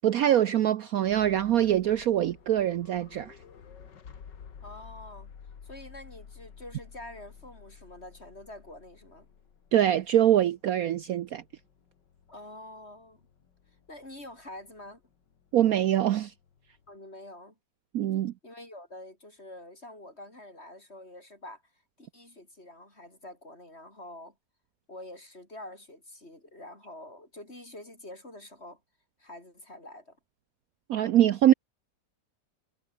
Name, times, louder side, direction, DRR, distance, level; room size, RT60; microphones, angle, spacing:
voice 1, 0.0-3.4 9.7-11.4 15.5-16.3 17.9-18.3 30.9-31.5, right 11 dB, 65° right, 1.0 m, -24 dB
sound 1, 1.0-16.9, left 7 dB, 85° left, 2.5 m, -52 dB
voice 2, 4.6-5.3 5.6-9.3 12.3-13.3 13.9-15.0 16.9-17.5 18.4-21.6 22.0-24.3 24.9-28.8 29.2-30.2, left 1 dB, 35° left, 7.3 m, -46 dB
omnidirectional pair, 1.9 m